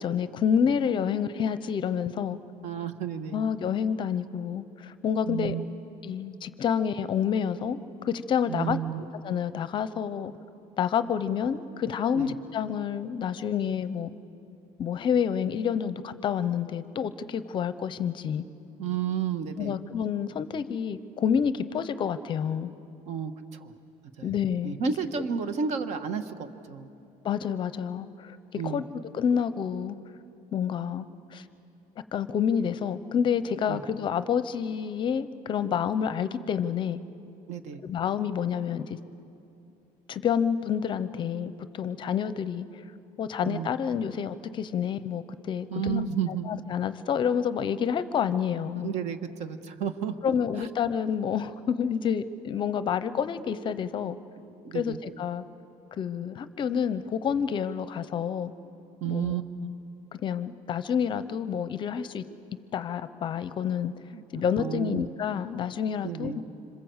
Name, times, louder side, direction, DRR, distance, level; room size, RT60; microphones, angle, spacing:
voice 1, 0.0-2.4 3.3-5.6 6.0-10.3 10.8-14.1 14.8-18.4 19.6-22.7 24.2-24.9 27.2-30.0 30.5-31.4 32.1-37.0 37.8-39.0 40.1-42.8 43.2-46.0 46.5-48.9 50.2-54.2 54.7-55.4 56.0-58.5 59.0-59.4 60.1-62.2 62.7-63.9 64.3-66.4, left 7 dB, 35° left, 14 dB, 0.7 m, -28 dB
voice 2, 2.6-3.4 5.3-5.6 8.5-9.0 12.1-12.3 18.8-19.8 23.1-23.3 23.6-23.7 24.2-24.3 24.6-26.9 28.6-28.8 33.7-33.8 37.5-37.8 43.4-43.7 45.7-46.5 48.7-50.7 54.4-55.0 59.0-59.5 64.1-64.2 64.6-65.1 66.0-66.4, right 7 dB, 50° right, 9 dB, 1.5 m, -32 dB
26.5 x 26.0 x 8.0 m, 2.7 s
cardioid pair, 170°, 14 cm